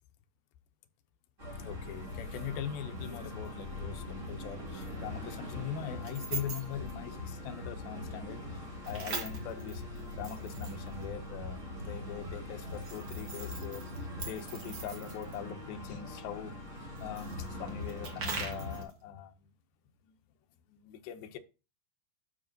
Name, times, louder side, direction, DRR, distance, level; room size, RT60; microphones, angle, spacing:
sound 1, 1.4-18.8, left 2 dB, 25° right, 2.0 m, -42 dB
voice 1, 1.6-19.5 20.0-20.1 20.7-21.4, left 9 dB, 80° left, 2.4 m, -42 dB
sound 2, 3.4-3.5 6.0-6.9 8.8-11.0 12.6-15.4 17.0-18.9, right 4 dB, 55° right, 1.2 m, -41 dB
12.5 x 5.1 x 2.6 m
omnidirectional pair, 4.3 m